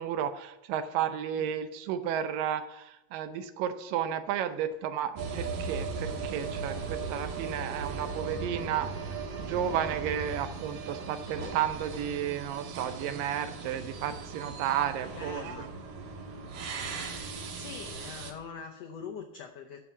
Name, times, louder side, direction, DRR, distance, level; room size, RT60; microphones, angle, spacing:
voice 1, 0.0-8.9 9.4-15.7, right 9 dB, 75° right, 10 dB, 2.3 m, -33 dB
sound 1, 5.2-18.3, right 4 dB, 60° right, 2.6 m, -38 dB
voice 2, 15.2-15.7 17.5-19.8, left 6 dB, 80° left, 3 dB, 1.4 m, -43 dB
12.0 x 5.9 x 7.1 m, 0.90 s
omnidirectional pair, 4.1 m